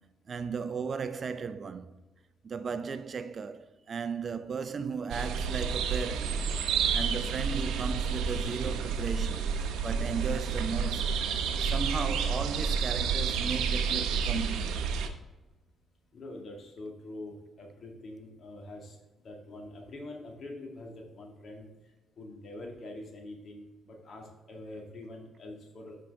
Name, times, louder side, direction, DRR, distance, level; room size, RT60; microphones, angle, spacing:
voice 1, 0.3-1.9 2.4-9.5 9.8-11.2 11.6-14.8, right 5 dB, 45° right, 0.4 m, -36 dB
sound 1, 5.1-15.1, right 6 dB, 85° right, 0.8 m, -30 dB
voice 2, 16.1-19.0 19.2-21.7 22.2-26.0, left 2 dB, 55° left, 2.0 m, -44 dB
7.6 x 5.7 x 3.6 m
cardioid pair, 90°, 0 cm